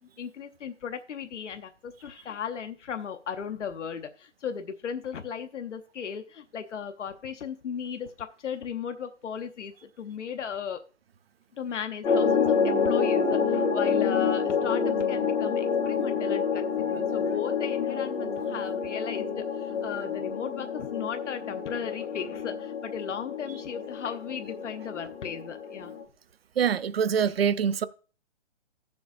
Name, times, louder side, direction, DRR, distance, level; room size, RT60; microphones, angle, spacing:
voice 1, 0.2-10.8 11.6-26.0, left 7 dB, 85° left, 1.0 m, -36 dB
sound 1, 12.0-26.0, left 6 dB, 70° left, 1.6 m, -28 dB
voice 2, 26.6-27.9, right 7 dB, 60° right, 0.5 m, -24 dB
14.0 x 7.0 x 2.6 m
hypercardioid pair, 175°, 35 cm